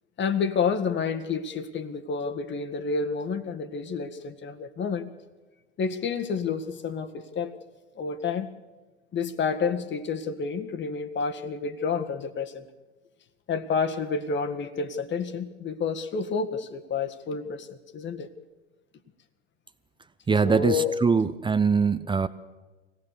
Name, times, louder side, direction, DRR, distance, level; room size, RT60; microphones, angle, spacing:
voice 1, 0.2-5.1 5.8-7.5 7.9-8.5 9.1-12.6 13.5-18.3 20.4-20.9, left 5 dB, 30° left, 8 dB, 1.7 m, -29 dB
voice 2, 20.3-22.3, right 5 dB, 15° right, 13 dB, 0.7 m, -22 dB
25.0 x 18.0 x 6.8 m, 1.2 s
hypercardioid pair, 85°, 35 cm